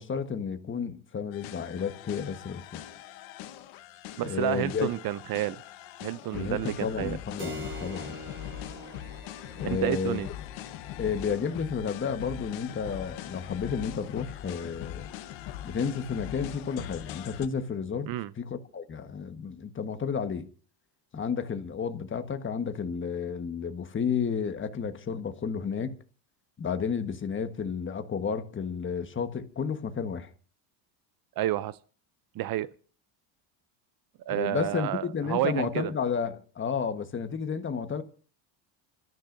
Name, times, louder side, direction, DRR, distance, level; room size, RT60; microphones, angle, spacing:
voice 1, 0.0-2.8 4.2-4.9 6.3-8.2 9.5-10.2 11.0-15.1 15.6-20.5 21.1-25.9 26.6-30.3 34.3-38.0, left 6 dB, 25° left, 1.4 m, -32 dB
sound 1, 1.3-17.5, left 12 dB, 65° left, 1.3 m, -41 dB
voice 2, 4.2-5.6 6.0-7.2 9.6-10.3 18.1-18.3 31.4-31.8 32.4-32.7 34.3-35.9, right 14 dB, 45° right, 0.6 m, -30 dB
Keyboard (musical), 7.4-15.6, right 1 dB, 25° right, 4.4 m, -47 dB
27.0 x 14.0 x 2.6 m
cardioid pair, 120°, 49 cm